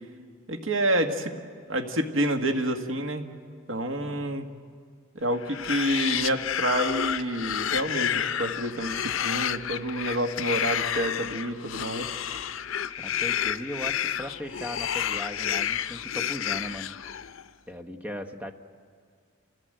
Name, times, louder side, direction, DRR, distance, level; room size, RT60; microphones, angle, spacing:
voice 1, 0.5-1.3 1.7-3.3 3.7-4.4 5.2-12.1, right 1 dB, 85° right, 4 dB, 1.8 m, -28 dB
sound 1, 5.4-17.4, left 9 dB, 85° left, 0.6 m, -30 dB
voice 2, 13.0-16.9 17.7-18.5, left 1 dB, 10° right, 6 dB, 1.2 m, -38 dB
30.0 x 16.0 x 7.8 m, 2.1 s
head